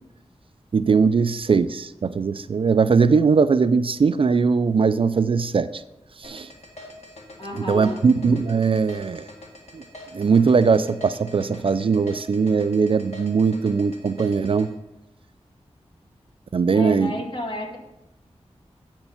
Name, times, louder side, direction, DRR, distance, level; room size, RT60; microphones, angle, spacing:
voice 1, 0.7-5.8 6.2-6.5 7.7-9.3 9.7-9.8 10.1-14.7 16.5-17.1, right 5 dB, 55° right, 13 dB, 0.3 m, -20 dB
sound 1, 6.2-14.7, left 1 dB, 80° left, 1.9 m, -43 dB
voice 2, 7.4-8.1 16.7-17.8, left 1 dB, 45° left, -1 dB, 2.1 m, -31 dB
9.6 x 4.4 x 7.0 m, 0.93 s
wide cardioid pair, 100°, 11 cm